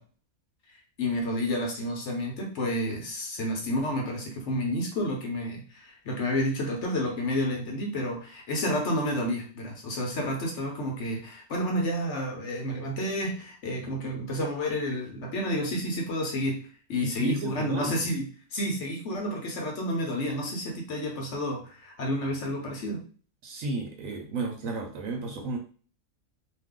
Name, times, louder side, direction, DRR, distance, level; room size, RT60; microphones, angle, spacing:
voice 1, 1.0-16.6 16.9-18.2 18.5-23.0, left 1 dB, 60° left, 0 dB, 1.0 m, -30 dB
voice 2, 17.0-18.1 23.4-25.6, right 3 dB, 70° right, 2 dB, 1.0 m, -33 dB
2.6 x 2.4 x 3.6 m, 0.39 s
omnidirectional pair, 1.5 m